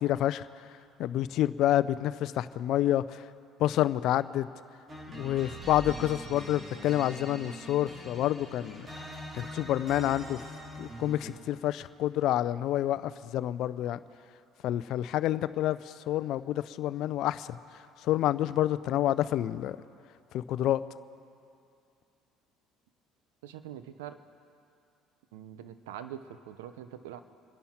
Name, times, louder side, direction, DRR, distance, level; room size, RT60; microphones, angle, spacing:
voice 1, 0.0-0.5 1.0-3.2 3.6-4.5 5.1-8.9 9.3-10.4 10.8-14.0 14.6-17.6 18.0-19.8 20.3-20.8, left 13 dB, 65° left, 16 dB, 0.5 m, -28 dB
sound 1, 4.9-11.6, right 1 dB, 35° right, 4.0 m, -43 dB
voice 2, 23.4-24.2 25.3-27.2, right 10 dB, 85° right, 11 dB, 0.7 m, -43 dB
26.5 x 11.0 x 4.4 m, 2.5 s
hypercardioid pair, 65°, 0 cm